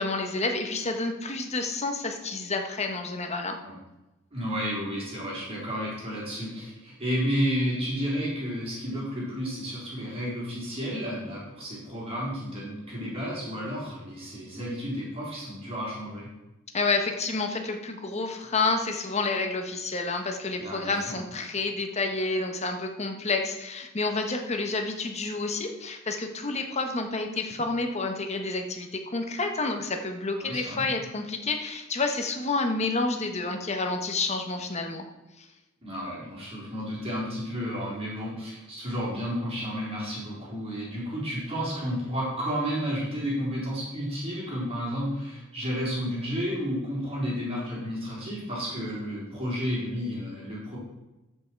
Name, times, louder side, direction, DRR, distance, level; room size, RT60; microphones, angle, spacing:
voice 1, 0.0-3.6 16.7-35.1 35.4-35.5, left 3 dB, 35° left, 4 dB, 1.2 m, -29 dB
voice 2, 4.3-16.3 20.6-21.2 30.4-30.8 35.8-50.8, equal, 30° right, -6 dB, 4.0 m, -32 dB
14.0 x 5.6 x 4.6 m, 1.0 s
head